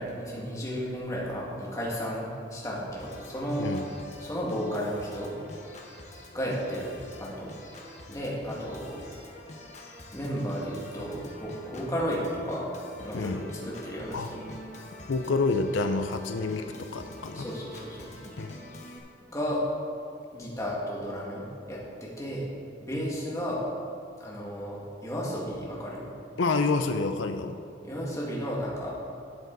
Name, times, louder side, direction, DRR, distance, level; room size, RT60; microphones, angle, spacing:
voice 1, 0.0-3.7 4.2-5.3 5.7-5.9 6.3-7.5 8.1-9.0 10.1-12.7 13.0-14.5 14.8-14.9 17.3-18.1 19.3-19.6 20.3-22.5 22.8-23.6 24.2-26.1 27.8-29.0, equal, 15° left, -5 dB, 2.0 m, -33 dB
Organ, 3.0-19.0, left 1 dB, 40° left, 1.2 m, -46 dB
voice 2, 15.1-17.5 18.4-18.5 26.4-27.6, left 3 dB, 90° left, 7 dB, 0.5 m, -28 dB
12.5 x 7.6 x 4.0 m, 2.4 s
head